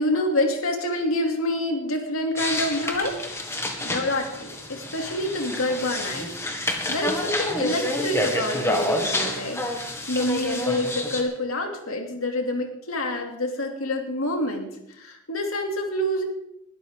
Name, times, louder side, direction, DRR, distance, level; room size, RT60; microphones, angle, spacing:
voice 1, 0.0-3.2 3.8-6.3 6.9-16.2, left 1 dB, 90° left, 3 dB, 2.7 m, -27 dB
sound 1, 2.4-11.2, left 1 dB, 15° left, 1.9 m, -28 dB
21.0 x 13.0 x 3.7 m, 0.81 s
head